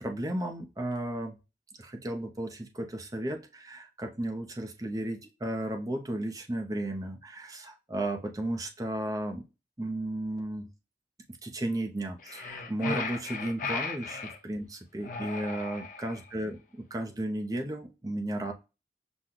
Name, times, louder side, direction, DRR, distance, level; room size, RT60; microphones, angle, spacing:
voice 1, 0.0-1.4 1.8-9.4 9.8-10.7 11.4-18.5, right 1 dB, 20° right, 3 dB, 0.6 m, -34 dB
sound 1, 12.2-14.4 15.0-16.3, left 4 dB, 45° left, 0.5 m, -36 dB
6.1 x 2.2 x 3.7 m, 0.29 s
head